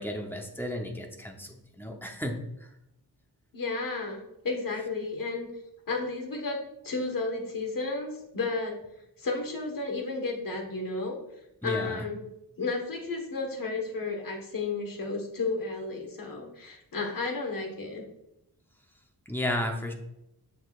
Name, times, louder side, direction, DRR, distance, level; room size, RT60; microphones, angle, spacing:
voice 1, 0.0-2.4 2.6-2.7 11.6-12.0 19.3-19.9, left 1 dB, 5° left, 2 dB, 0.7 m, -33 dB
voice 2, 3.5-5.5 5.9-6.6 6.8-8.8 9.2-11.2 11.6-12.2 12.6-18.0, left 3 dB, 60° left, 2 dB, 1.4 m, -32 dB
6.7 x 6.1 x 2.4 m, 0.83 s
wide cardioid pair, 175°, 38 cm